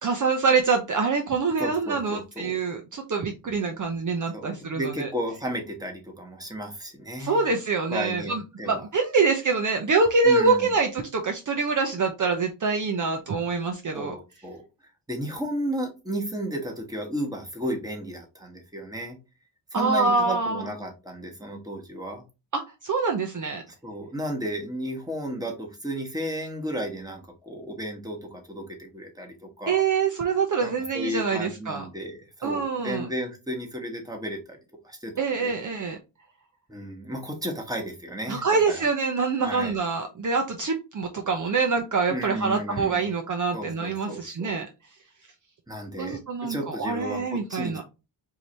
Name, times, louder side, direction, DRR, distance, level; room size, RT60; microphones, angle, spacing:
voice 1, 0.0-5.1 7.2-14.1 19.7-20.7 22.5-23.6 29.7-31.9 32.4-33.1 35.2-36.0 38.3-44.7 46.0-47.8, right 4 dB, 45° right, 4 dB, 0.7 m, -25 dB
voice 2, 1.6-2.6 4.3-7.5 7.9-8.8 10.2-10.7 13.9-14.6 15.1-19.2 19.7-22.2 23.8-29.8 30.6-34.6 34.8-35.1 35.4-35.5 36.7-38.8 39.4-39.7 42.1-43.0 43.5-44.6 45.7-47.8, equal, 10° right, 2 dB, 1.3 m, -33 dB
4.6 x 2.7 x 3.3 m, 0.28 s
cardioid pair, 95°, 43 cm